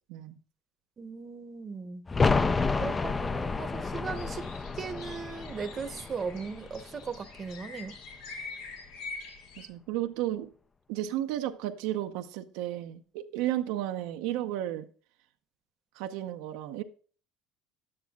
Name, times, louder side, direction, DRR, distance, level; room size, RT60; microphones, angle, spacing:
voice 1, 1.0-2.0 2.8-4.5 4.8-8.0, right 5 dB, 30° right, 0.8 m, -38 dB
sound 1, 2.1-7.6 7.9-8.0, left 4 dB, 20° left, 0.4 m, -30 dB
sound 2, 4.1-9.7, left 4 dB, 80° left, 1.9 m, -45 dB
voice 2, 9.6-10.5 10.9-14.9 16.0-16.8, right 13 dB, 80° right, 0.6 m, -33 dB
10.5 x 8.7 x 2.3 m
supercardioid pair, 110°, 0 cm